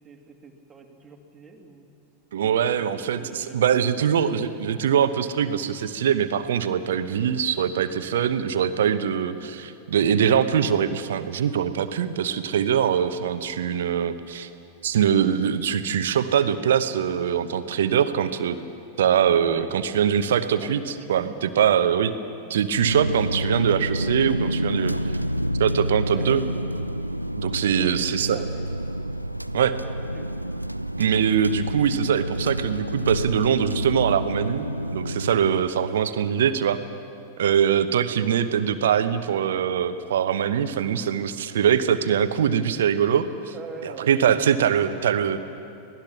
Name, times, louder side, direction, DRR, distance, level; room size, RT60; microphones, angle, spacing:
voice 1, 0.0-1.9 2.8-4.4 9.4-9.7 19.4-19.7 20.6-20.7 21.0-21.4 26.1-26.6 27.8-28.5 29.6-30.3 43.5-45.4, right 4 dB, 15° right, 2 dB, 2.4 m, -43 dB
voice 2, 2.3-14.5 14.8-18.6 19.0-22.2 22.5-24.9 25.6-26.4 27.4-28.4 29.5-29.7 31.0-34.7 34.9-36.8 37.4-43.5 43.8-45.4, right 8 dB, 60° right, 12 dB, 1.0 m, -23 dB
sound 1, 22.7-35.6, equal, 90° right, 0.4 m, -28 dB
25.0 x 18.0 x 6.0 m, 2.7 s
figure-of-eight pair, 90°, 0 cm